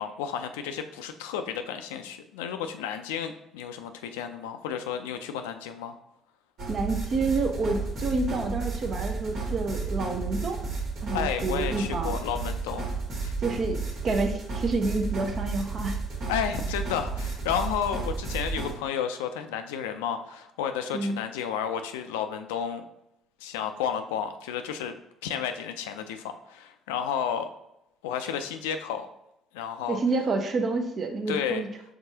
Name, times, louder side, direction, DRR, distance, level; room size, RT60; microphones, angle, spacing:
voice 1, 0.0-6.0 11.1-12.8 13.2-13.3 16.3-22.8 23.4-25.0 25.2-27.5 28.0-29.1 29.5-30.0 31.3-31.6, left 8 dB, 90° left, 8 dB, 0.4 m, -32 dB
sound 1, 6.6-18.7, right 4 dB, 65° right, 1.5 m, -32 dB
voice 2, 6.7-10.6 11.0-12.1 13.4-16.0 20.9-21.2 29.9-31.7, right 3 dB, 50° right, 5 dB, 0.7 m, -28 dB
4.8 x 3.6 x 2.7 m, 0.83 s
supercardioid pair, 65°, 0 cm